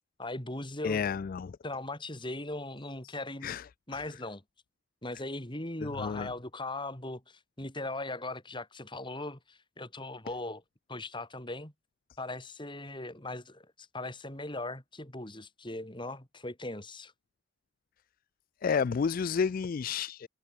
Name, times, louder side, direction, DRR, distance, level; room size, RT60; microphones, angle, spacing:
voice 1, 0.2-1.0 1.6-3.5 3.9-4.4 5.0-10.6 10.9-11.7 12.2-17.1, left 2 dB, 25° left, 4.4 m, -39 dB
voice 2, 0.8-1.6 3.0-3.1 3.4-3.7 3.9-4.0 5.8-6.3 18.6-20.3, left 6 dB, 45° left, 0.3 m, -31 dB
head